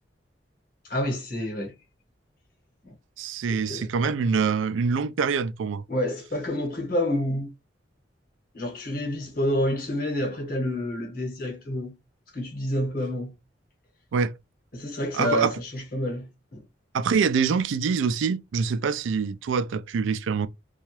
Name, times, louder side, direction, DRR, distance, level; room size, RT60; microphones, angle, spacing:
voice 1, 0.8-1.8 2.8-2.9 3.5-3.9 5.9-7.5 8.5-12.0 12.3-13.3 14.7-16.6, left 1 dB, 50° left, 1.1 m, -28 dB
voice 2, 3.2-5.8 14.1-14.3 15.1-15.5 16.9-20.5, right 5 dB, 85° right, 0.4 m, -25 dB
2.8 x 2.3 x 3.0 m
head